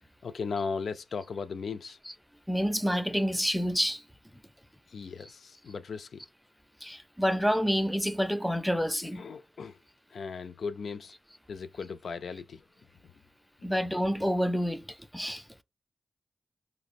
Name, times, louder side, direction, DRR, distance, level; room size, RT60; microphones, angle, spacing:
voice 1, 0.2-2.0 4.9-6.3 9.0-9.8 10.1-11.1 11.5-12.6, left 5 dB, 75° left, 0.3 m, -37 dB
voice 2, 2.5-4.0 6.8-9.2 13.6-14.8 15.1-15.4, equal, ahead, 0.3 m, -28 dB
5.0 x 2.0 x 2.5 m
cardioid pair, 75°, 0 cm